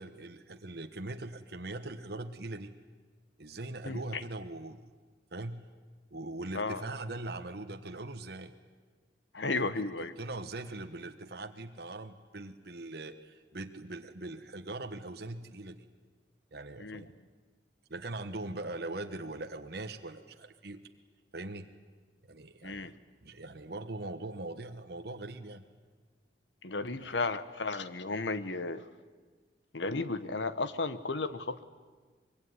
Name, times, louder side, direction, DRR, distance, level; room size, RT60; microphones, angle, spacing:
voice 1, 0.0-2.7 3.4-4.9 5.3-5.6 6.1-8.5 9.5-9.7 10.2-15.8 16.5-17.1 17.9-20.8 21.3-21.7 22.3-22.9 23.2-25.6, right 2 dB, 60° right, 6 dB, 1.3 m, -41 dB
voice 2, 3.8-4.2 6.5-6.8 9.3-10.1 16.8-17.3 22.6-22.9 26.6-28.9 29.7-31.6, left 3 dB, 85° left, 13 dB, 1.3 m, -34 dB
24.5 x 22.5 x 9.7 m, 1.4 s
head